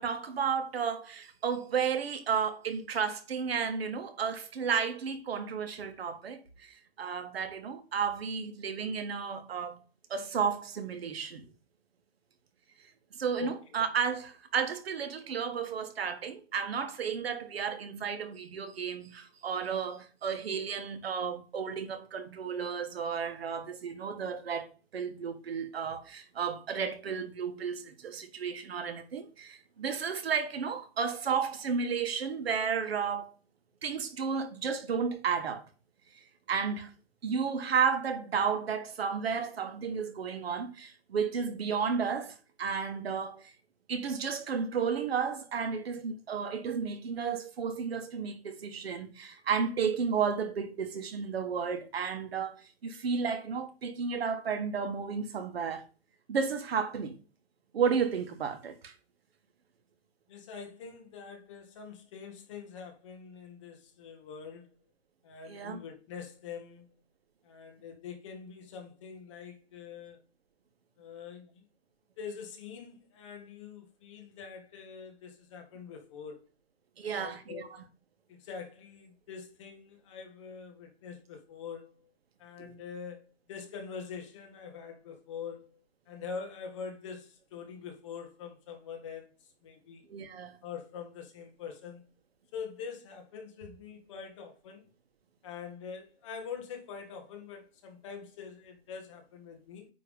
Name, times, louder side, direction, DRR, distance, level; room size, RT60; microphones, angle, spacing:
voice 1, 0.0-9.8 10.1-11.5 13.1-24.7 24.9-33.3 33.8-35.6 36.5-36.9 37.2-43.5 43.9-55.8 56.3-57.2 57.7-58.9 65.5-65.8 77.0-77.8 82.6-82.7 90.1-90.6, right 6 dB, 65° right, 1.7 m, -33 dB
voice 2, 60.3-64.8 65.2-66.9 67.4-70.2 71.0-71.6 72.2-76.4 77.0-77.8 78.3-81.9 82.4-85.7 86.1-89.3 89.6-90.1 90.6-92.0 92.5-94.8 95.4-99.9, left 6 dB, 30° left, 1.4 m, -44 dB
9.3 x 3.4 x 5.3 m
hypercardioid pair, 175°, 32 cm